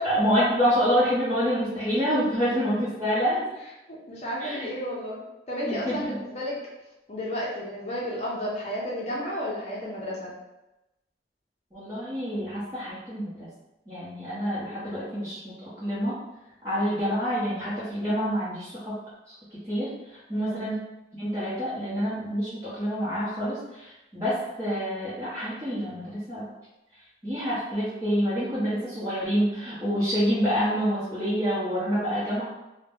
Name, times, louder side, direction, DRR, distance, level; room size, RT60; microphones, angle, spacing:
voice 1, 0.0-3.4 4.4-4.7 5.6-6.1 11.7-13.5 13.9-16.1 16.6-18.9 19.3-19.4 19.7-20.8 21.1-26.5 27.2-32.5, equal, 20° right, -13 dB, 0.9 m, -27 dB
voice 2, 3.9-5.2 5.5-6.6 7.1-10.3 20.3-20.6 31.9-32.2, equal, 35° left, -5 dB, 0.6 m, -32 dB
2.8 x 2.1 x 3.4 m, 0.96 s
head